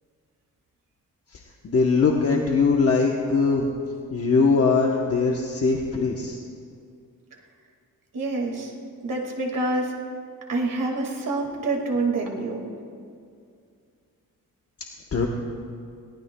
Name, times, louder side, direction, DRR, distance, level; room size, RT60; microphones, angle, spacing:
voice 1, 1.3-3.7 4.1-6.4 15.1-15.3, left 4 dB, 45° left, 0 dB, 0.9 m, -21 dB
voice 2, 8.1-8.7 9.0-9.9 10.5-12.7, right 2 dB, 70° right, 1 dB, 2.0 m, -27 dB
22.0 x 18.0 x 2.2 m, 2.3 s
wide cardioid pair, 150°, 34 cm